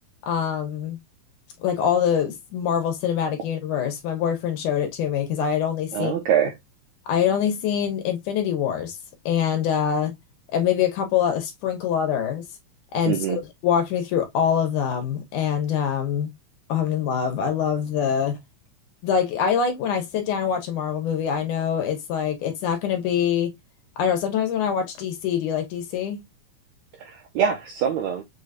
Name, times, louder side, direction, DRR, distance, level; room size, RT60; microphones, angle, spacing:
voice 1, 0.2-1.0 1.6-6.1 7.1-8.9 9.3-10.1 10.5-12.4 12.9-13.2 13.6-16.3 16.7-18.4 19.0-23.5 24.0-26.2, left 8 dB, 70° left, 2.6 m, -24 dB
voice 2, 5.9-6.5 13.0-13.4 27.0-28.2, right 8 dB, 75° right, 1.7 m, -24 dB
6.1 x 3.2 x 2.5 m
omnidirectional pair, 3.9 m